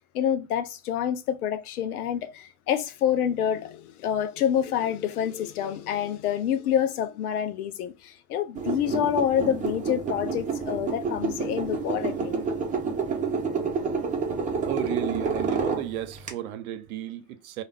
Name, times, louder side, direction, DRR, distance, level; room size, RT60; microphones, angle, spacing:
voice 1, 0.1-12.4, left 9 dB, 85° left, 0.6 m, -27 dB
sound 1, 8.5-16.3, right 4 dB, 20° right, 0.7 m, -29 dB
voice 2, 14.6-17.6, right 12 dB, 75° right, 0.6 m, -33 dB
2.4 x 2.2 x 3.4 m
hypercardioid pair, 95°, 43 cm